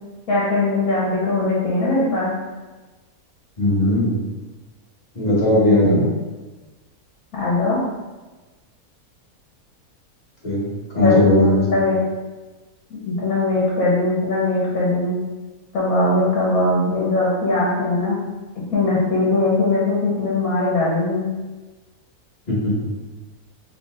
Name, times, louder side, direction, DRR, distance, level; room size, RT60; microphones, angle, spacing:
voice 1, 0.3-2.3 5.5-6.0 7.3-7.8 11.0-12.0 12.9-15.2 15.7-18.2 18.6-21.3, left 2 dB, 75° left, -5 dB, 1.4 m, -20 dB
voice 2, 3.6-4.2 5.1-6.1 10.4-10.7 10.9-11.6 22.5-22.9, left 1 dB, 30° left, -7 dB, 1.3 m, -18 dB
3.9 x 3.2 x 2.5 m, 1.2 s
omnidirectional pair, 1.6 m